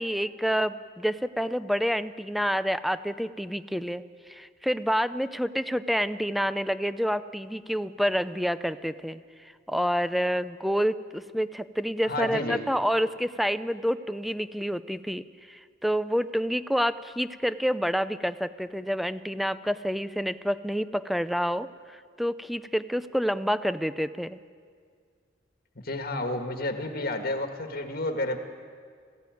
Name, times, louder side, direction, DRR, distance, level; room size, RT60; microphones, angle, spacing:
voice 1, 0.0-9.2 9.7-24.4, equal, ahead, 13 dB, 0.5 m, -28 dB
voice 2, 12.0-12.6 25.8-28.4, left 2 dB, 50° left, 5 dB, 1.6 m, -30 dB
20.0 x 15.5 x 9.3 m, 2.1 s
head